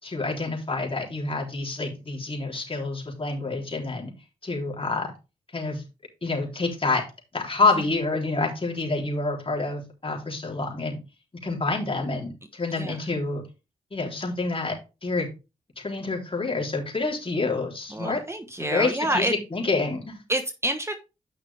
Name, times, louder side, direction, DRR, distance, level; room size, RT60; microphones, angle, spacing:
voice 1, 0.0-4.1 4.4-5.1 5.5-5.8 6.2-7.0 7.3-11.0 11.4-13.4 13.9-14.8 15.0-15.3 15.8-18.2 18.6-20.2, left 3 dB, 40° left, 0 dB, 3.8 m, -27 dB
voice 2, 17.9-19.3 20.3-20.9, right 1 dB, 20° right, 6 dB, 1.2 m, -27 dB
9.9 x 5.8 x 3.5 m, 0.28 s
cardioid pair, 55°, 14 cm